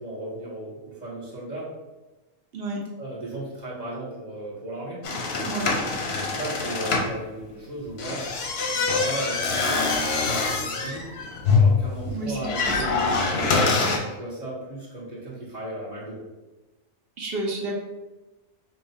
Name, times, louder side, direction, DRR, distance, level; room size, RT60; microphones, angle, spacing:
voice 1, 0.0-1.7 3.0-5.0 6.3-8.2 8.7-11.1 11.5-13.5 14.0-16.2, right 1 dB, 35° right, -6 dB, 1.1 m, -36 dB
sound 1, 5.0-7.1 7.9-14.0, left 4 dB, 60° left, 0.8 m, -24 dB
voice 2, 12.0-12.8 17.2-17.8, right 2 dB, 55° right, 1 dB, 0.7 m, -31 dB
5.4 x 2.3 x 2.7 m, 1.1 s
omnidirectional pair, 1.4 m